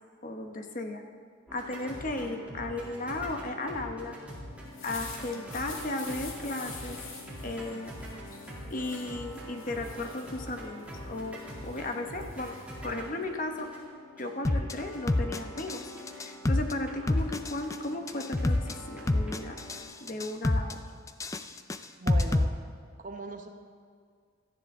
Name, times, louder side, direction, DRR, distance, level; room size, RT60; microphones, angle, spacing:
voice 1, 0.2-1.0 1.5-4.2 4.8-7.0 7.4-8.0 8.7-12.6 12.8-13.7 14.2-15.8 16.1-19.6 20.0-20.8, left 2 dB, 40° left, 5 dB, 0.9 m, -35 dB
sound 1, 1.5-19.8, equal, 5° right, 2.4 m, -44 dB
sound 2, 4.5-13.8, left 4 dB, 85° left, 2.3 m, -48 dB
sound 3, 14.4-14.7 15.1-15.8 16.1-16.7 17.1-17.8 18.1-18.7 19.1-19.8 20.1-20.7 21.1-22.4, left 2 dB, 15° left, 0.3 m, -27 dB
voice 2, 22.0-22.6 23.0-23.5, right 3 dB, 40° right, 4 dB, 0.9 m, -39 dB
17.5 x 12.5 x 3.6 m, 2.1 s
head